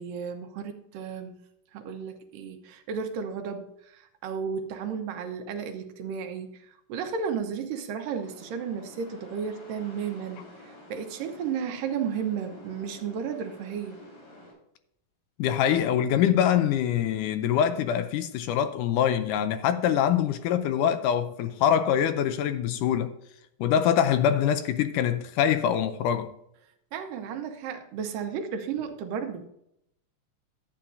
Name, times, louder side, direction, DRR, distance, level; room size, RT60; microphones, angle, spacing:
voice 1, 0.0-1.4 1.7-14.0 26.9-29.5, right 7 dB, 80° right, 2.6 m, -33 dB
sound 1, 8.0-14.5, left 2 dB, 65° left, 5.9 m, -49 dB
voice 2, 15.4-23.1 23.6-26.3, left 9 dB, 80° left, 2.0 m, -24 dB
12.0 x 8.8 x 2.6 m
omnidirectional pair, 3.9 m